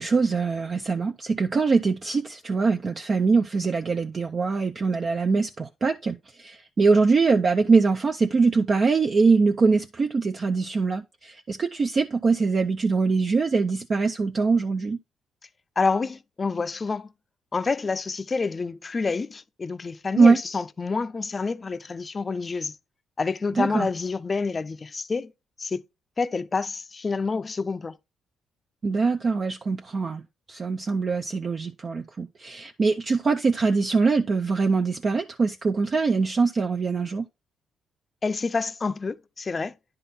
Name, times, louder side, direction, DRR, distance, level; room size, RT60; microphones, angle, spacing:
voice 1, 0.0-15.0 20.2-20.4 23.5-23.9 28.8-30.2 30.5-37.3, right 4 dB, 40° right, 0.5 m, -23 dB
voice 2, 15.8-17.1 17.5-22.7 23.2-25.3 25.6-25.8 26.2-28.0 38.2-39.7, left 4 dB, 30° left, 0.5 m, -28 dB
10.0 x 3.7 x 4.1 m
cardioid pair, 90°, 0 cm